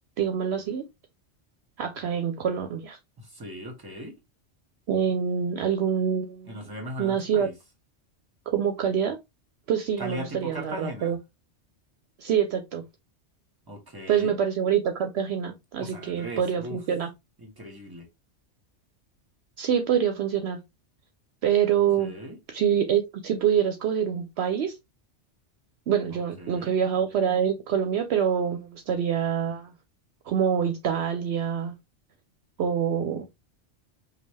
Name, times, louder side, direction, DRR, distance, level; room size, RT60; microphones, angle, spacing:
voice 1, 0.2-0.8 1.8-3.0 4.9-6.6 7.0-7.5 8.5-9.2 9.7-11.2 12.2-12.8 14.1-17.1 19.6-20.6 21.4-22.1 22.5-24.8 25.9-29.7 30.3-31.7 32.6-33.3, right 8 dB, 70° right, 0.8 m, -25 dB
voice 2, 3.2-4.2 6.5-7.5 10.0-11.1 13.7-14.3 15.8-16.8 17.4-18.1 22.0-22.4 26.1-26.7, equal, 20° right, 1.4 m, -38 dB
5.2 x 2.3 x 3.2 m
omnidirectional pair, 1.2 m